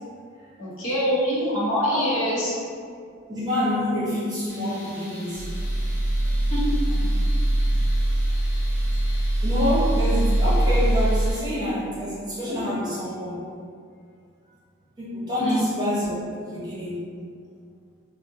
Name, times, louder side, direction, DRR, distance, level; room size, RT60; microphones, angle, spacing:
voice 1, 0.6-2.5 6.5-6.8 15.4-15.7, equal, 85° left, -7 dB, 0.9 m, -24 dB
voice 2, 3.2-5.5 6.9-7.0 9.4-13.4 15.0-16.1 16.4-17.1, left 1 dB, 20° right, -10 dB, 0.8 m, -27 dB
Tools, 4.5-11.4, left 2 dB, 15° left, 0.5 m, -43 dB
sound 1, 5.4-11.3, right 1 dB, 40° right, 0.3 m, -22 dB
3.6 x 2.0 x 2.6 m, 2.2 s
head